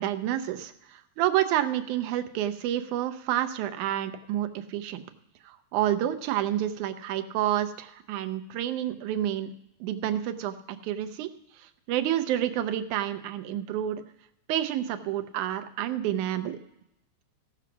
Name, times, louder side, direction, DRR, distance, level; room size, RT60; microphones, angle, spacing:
voice 1, 0.0-5.0 5.5-9.5 9.8-11.3 11.6-14.0 14.5-16.6, right 12 dB, 90° right, 9 dB, 2.2 m, -29 dB
16.0 x 5.9 x 5.9 m, 0.83 s
omnidirectional pair, 3.4 m